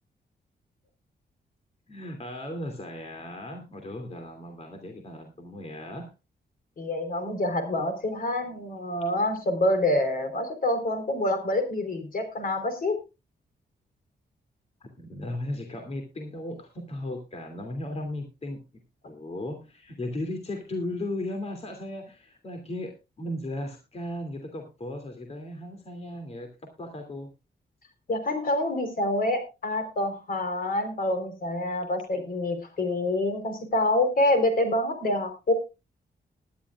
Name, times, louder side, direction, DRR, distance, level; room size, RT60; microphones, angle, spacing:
voice 1, 1.9-6.1 14.8-18.6 19.0-27.3, left 1 dB, 35° left, 5 dB, 2.7 m, -36 dB
voice 2, 6.8-13.0 28.1-35.5, left 1 dB, 55° left, 8 dB, 4.0 m, -27 dB
21.0 x 11.0 x 2.4 m, 0.27 s
wide cardioid pair, 120°, 18 cm